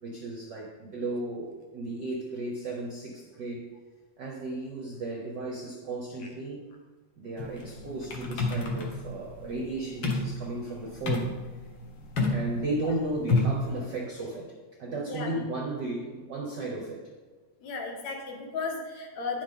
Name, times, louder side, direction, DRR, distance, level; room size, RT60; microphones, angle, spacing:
voice 1, 0.0-3.6 4.2-6.7 7.2-11.3 12.3-14.5 14.8-17.1, right 2 dB, 65° right, -1 dB, 1.0 m, -34 dB
sound 1, 7.4-13.7, left 2 dB, 55° left, 1.5 m, -30 dB
voice 2, 17.6-19.4, left 4 dB, 75° left, 1 dB, 2.6 m, -35 dB
9.8 x 7.2 x 3.8 m, 1.4 s
omnidirectional pair, 3.4 m